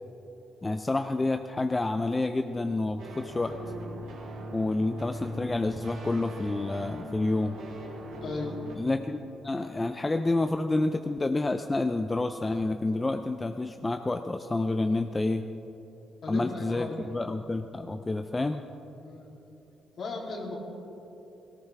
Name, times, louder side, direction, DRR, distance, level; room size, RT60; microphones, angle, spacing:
voice 1, 0.6-3.5 4.5-7.6 8.8-15.4 16.3-18.6, left 2 dB, 20° left, 7 dB, 0.5 m, -29 dB
sound 1, 3.0-8.8, equal, 90° right, 3.9 m, -40 dB
voice 2, 8.2-8.5 16.2-17.0 19.0-19.3 20.0-20.6, left 3 dB, 55° left, -1 dB, 3.1 m, -36 dB
18.5 x 18.0 x 3.4 m, 3.0 s
cardioid pair, 90°, 0 cm